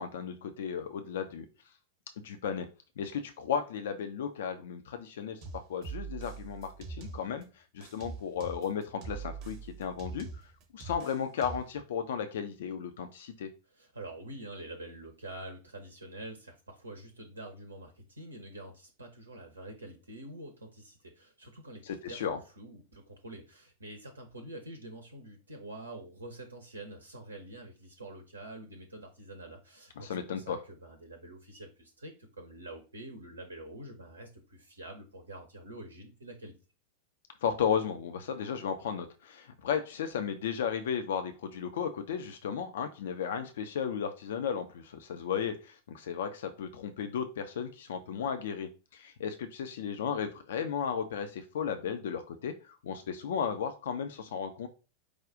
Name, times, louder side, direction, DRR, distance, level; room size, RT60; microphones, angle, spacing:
voice 1, 0.0-1.5 2.2-2.7 3.0-5.4 5.7-10.3 10.7-13.5 21.8-22.4 30.0-30.6 37.4-54.7, left 7 dB, 60° left, 8 dB, 0.4 m, -34 dB
sound 1, 5.4-7.4 7.8-11.8, right 5 dB, 40° right, 0.9 m, -43 dB
voice 2, 13.7-36.5, right 1 dB, 75° right, 5 dB, 0.7 m, -46 dB
4.9 x 2.3 x 3.7 m, 0.32 s
figure-of-eight pair, 90°, 0 cm